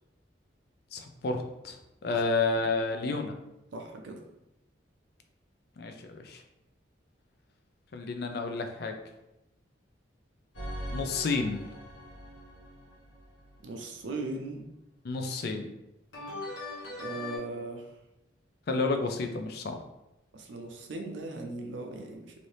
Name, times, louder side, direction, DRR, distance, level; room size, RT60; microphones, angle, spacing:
voice 1, 0.9-1.8 2.0-3.3 5.8-6.4 7.9-8.9 10.9-11.6 15.0-15.7 18.7-19.8, left 3 dB, 55° left, 5 dB, 0.4 m, -30 dB
voice 2, 3.7-4.2 13.6-14.6 17.0-17.9 20.3-22.5, right 2 dB, 75° right, 3 dB, 0.5 m, -38 dB
sound 1, 10.5-13.6 16.1-17.4, left 1 dB, 85° left, 1.1 m, -41 dB
2.7 x 2.6 x 3.2 m, 0.91 s
head